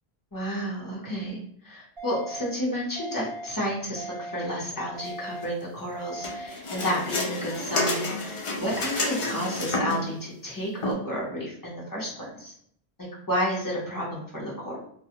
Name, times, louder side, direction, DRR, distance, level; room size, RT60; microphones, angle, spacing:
voice 1, 0.3-1.4 1.6-12.5 13.3-14.8, equal, 20° left, -5 dB, 0.7 m, -31 dB
sound 1, 2.0-2.5 3.0-3.5 4.0-4.5 5.0-5.5 6.0-6.5, right 2 dB, 35° right, 0.8 m, -38 dB
sound 2, 6.2-10.1 10.8-10.9, left 2 dB, 50° left, 0.4 m, -30 dB
2.3 x 2.1 x 2.8 m, 0.66 s
omnidirectional pair, 1.1 m